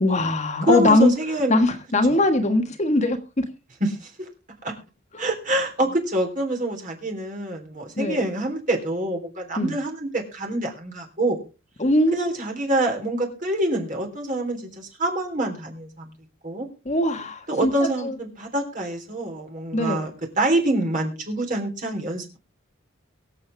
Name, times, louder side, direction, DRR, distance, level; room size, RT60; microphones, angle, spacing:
voice 1, 0.0-1.1 1.5-3.4 5.1-5.3 8.0-8.2 9.6-9.7 11.8-12.3 16.8-17.7 18.0-18.1 19.7-20.1, left 2 dB, 35° left, 1.5 m, -21 dB
voice 2, 0.6-1.6 2.1-2.2 3.8-4.1 4.6-4.7 5.2-11.4 12.1-16.1 16.4-16.7 17.5-20.1 20.4-22.4, right 1 dB, 40° right, 3.5 m, -26 dB
23.0 x 7.8 x 3.4 m
head